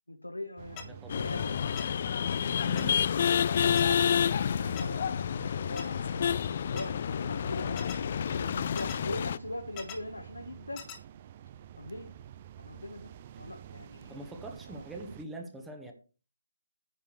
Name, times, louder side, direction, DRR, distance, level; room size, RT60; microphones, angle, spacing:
voice 1, 0.1-1.5 2.2-2.5 3.7-4.2 4.5-6.3 6.6-7.9 8.1-10.8 11.8-12.1 12.6-13.1 13.4-14.3 14.7-14.9, left 1 dB, 85° left, 1.4 m, -41 dB
sound 1, 0.6-15.2, right 11 dB, 30° right, 0.4 m, -49 dB
sound 2, 0.8-0.9 1.8-1.9 2.8-2.9 3.8-3.9 4.8-4.9 5.8-5.9 6.8-6.9 7.8-8.0 8.8-9.0 9.8-10.0 10.8-11.0, left 8 dB, 20° left, 1.4 m, -41 dB
voice 2, 0.8-1.2 2.6-3.1 14.1-15.9, right 1 dB, 5° right, 1.2 m, -43 dB
sound 3, 1.1-9.4, left 8 dB, 40° left, 0.3 m, -29 dB
10.5 x 8.5 x 3.2 m
figure-of-eight pair, 145°, 0 cm